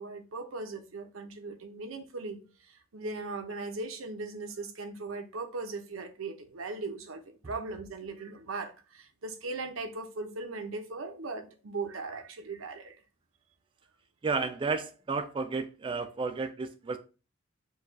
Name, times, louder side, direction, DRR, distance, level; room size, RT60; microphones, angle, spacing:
voice 1, 0.0-2.4 2.7-13.0, right 3 dB, 85° right, 0.8 m, -39 dB
voice 2, 14.2-17.0, right 4 dB, 25° right, 0.3 m, -32 dB
4.6 x 2.4 x 4.6 m
head